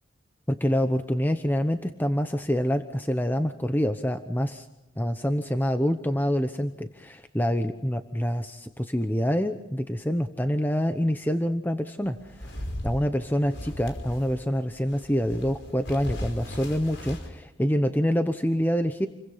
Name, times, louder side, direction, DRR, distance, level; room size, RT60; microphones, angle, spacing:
voice 1, 0.5-4.7 5.0-12.6 12.8-19.1, equal, 10° left, 8 dB, 0.9 m, -26 dB
sound 1, 12.1-14.4 14.8-17.3, equal, 70° left, 5.2 m, -37 dB
29.0 x 23.0 x 5.7 m, 0.92 s
head